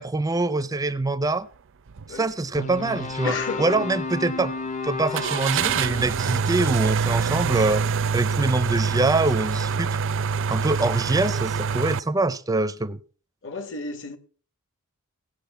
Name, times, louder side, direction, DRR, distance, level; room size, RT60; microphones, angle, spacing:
voice 1, 0.0-1.5 2.1-4.5 4.8-7.8 8.1-10.0 10.5-13.0, right 2 dB, 15° right, 0.5 m, -24 dB
sound 1, 1.9-2.1 2.6-2.7 5.1-12.0, right 6 dB, 60° right, 0.5 m, -25 dB
sound 2, 2.5-8.8, left 4 dB, 35° left, 0.8 m, -34 dB
voice 2, 3.2-3.9 13.4-14.2, left 3 dB, 60° left, 2.0 m, -32 dB
17.5 x 6.2 x 8.2 m
head